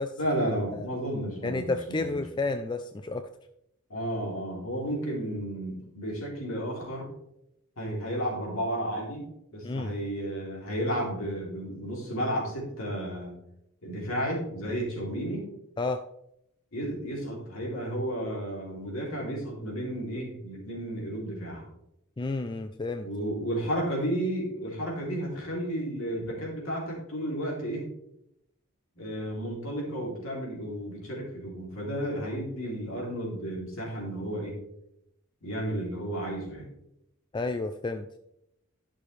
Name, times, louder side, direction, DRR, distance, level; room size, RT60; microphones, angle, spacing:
voice 1, 0.2-2.2 3.9-7.1 7.8-9.3 9.5-13.3 13.8-15.5 16.7-21.6 23.0-27.9 29.0-34.6 35.4-36.7, equal, 70° left, -3 dB, 3.2 m, -32 dB
voice 2, 1.4-3.3 9.6-9.9 15.8-16.0 22.2-23.1 37.3-38.1, left 3 dB, 20° left, 8 dB, 0.4 m, -31 dB
12.0 x 6.2 x 3.2 m, 0.80 s
head